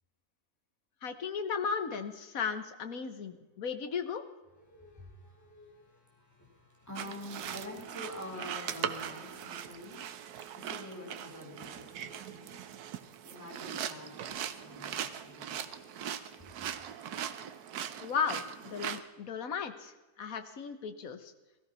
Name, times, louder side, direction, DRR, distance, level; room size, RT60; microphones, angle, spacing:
voice 1, 1.0-4.2 18.0-21.3, left 6 dB, 65° left, 9 dB, 1.6 m, -35 dB
voice 2, 4.6-12.6 13.2-15.8, left 1 dB, 10° left, -3 dB, 4.5 m, -47 dB
sound 1, 7.0-19.0, right 9 dB, 85° right, 1.3 m, -40 dB
17.0 x 14.0 x 5.5 m, 1.1 s
omnidirectional pair, 1.6 m